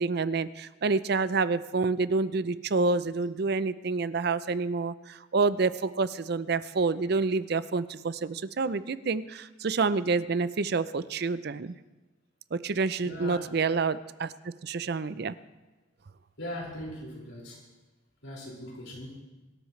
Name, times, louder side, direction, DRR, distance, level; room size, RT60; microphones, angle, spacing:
voice 1, 0.0-11.7 12.5-14.3 14.6-15.3, right 4 dB, 55° right, 15 dB, 0.5 m, -28 dB
voice 2, 13.0-13.5 16.4-17.7 18.2-19.2, equal, 80° left, -3 dB, 5.3 m, -40 dB
24.0 x 13.0 x 3.2 m, 1.1 s
head